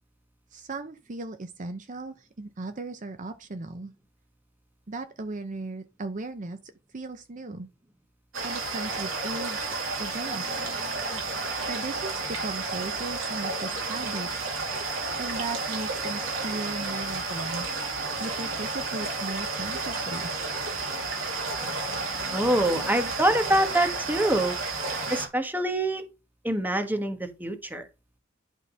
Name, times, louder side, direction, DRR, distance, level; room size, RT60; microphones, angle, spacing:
voice 1, 0.5-3.9 4.9-6.6 6.9-7.7 8.4-10.6 11.1-11.2 11.7-12.1 12.4-14.3 15.2-17.7 18.2-20.3, right 2 dB, 40° right, 0.7 m, -37 dB
sound 1, 8.3-25.3, right 3 dB, 85° right, 2.6 m, -31 dB
voice 2, 22.3-24.6 25.1-26.1 26.4-27.9, right 1 dB, 10° right, 1.3 m, -25 dB
11.0 x 3.7 x 5.6 m
head